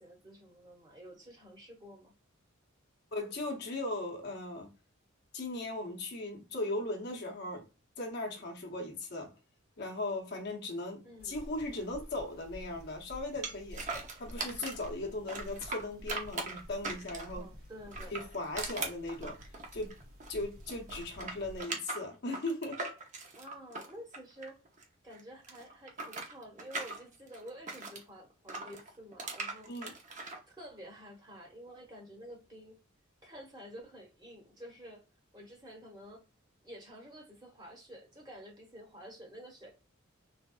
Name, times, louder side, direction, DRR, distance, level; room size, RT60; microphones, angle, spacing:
voice 1, 0.0-2.1 11.0-11.4 17.3-18.1 23.3-24.6 25.0-29.7 30.5-32.8 33.2-35.0 35.3-36.2 36.6-39.7, equal, 20° right, 1.2 m, -50 dB
voice 2, 3.1-4.7 5.3-7.7 8.0-9.3 9.8-13.8 14.2-17.5 18.1-19.4 19.7-19.9 20.3-22.9 29.7-29.9, left 2 dB, 55° left, 0.9 m, -38 dB
sound 1, 11.2-21.6, equal, 85° right, 1.9 m, -50 dB
sound 2, 13.4-14.9 15.3-17.4 17.9-20.4 20.7-24.8 25.1-28.0 28.5-30.4, right 3 dB, 35° right, 0.8 m, -40 dB
3.4 x 3.2 x 2.3 m
head